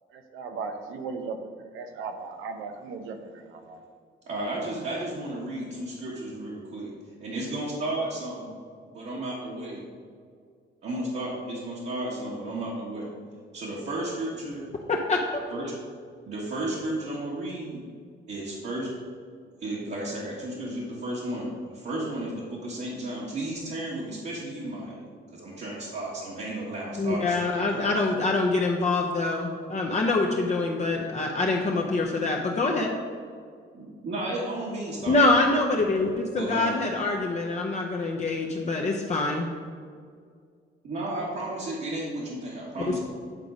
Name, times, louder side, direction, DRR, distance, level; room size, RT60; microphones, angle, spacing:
voice 1, 0.3-3.8, right 4 dB, 85° right, 6 dB, 0.7 m, -37 dB
voice 2, 4.3-6.9 7.2-8.5 8.9-9.8 10.8-13.1 13.5-14.7 15.5-15.7 16.3-17.8 18.3-18.9 19.6-25.0 25.3-27.9 33.7-35.8 36.3-36.8 40.8-43.0, right 1 dB, 60° right, -7 dB, 1.6 m, -33 dB
voice 3, 14.9-15.4 27.0-32.9 35.1-39.5, left 3 dB, 35° left, 0 dB, 0.7 m, -25 dB
9.0 x 3.7 x 5.1 m, 2.1 s
cardioid pair, 90°, 20 cm